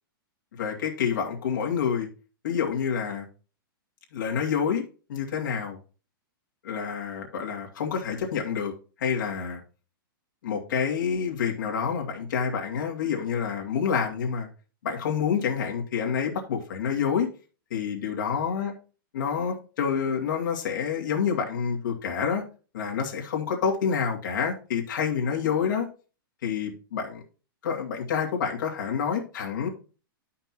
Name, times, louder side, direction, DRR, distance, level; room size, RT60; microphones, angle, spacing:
voice 1, 0.5-2.1 2.4-3.3 4.1-4.8 5.1-5.8 6.6-8.7 9.0-9.6 10.4-14.5 14.8-17.3 17.7-18.7 19.1-22.4 22.7-25.9 26.4-27.2 27.6-29.7, left 7 dB, 55° left, 1 dB, 2.5 m, -28 dB
12.0 x 5.8 x 3.0 m, 0.35 s
hypercardioid pair, 175°, 12 cm